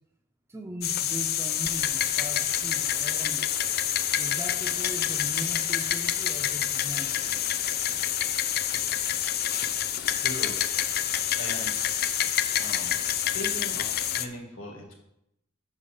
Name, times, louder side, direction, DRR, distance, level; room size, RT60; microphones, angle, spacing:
voice 1, 0.5-3.5 4.2-7.9, right 1 dB, 15° right, 3 dB, 0.6 m, -40 dB
sound 1, 0.8-14.2, left 10 dB, 50° left, 0.5 m, -27 dB
voice 2, 10.2-10.6 11.4-11.8 12.6-14.9, left 1 dB, 85° left, 2 dB, 1.9 m, -39 dB
5.4 x 5.3 x 6.7 m, 0.81 s
head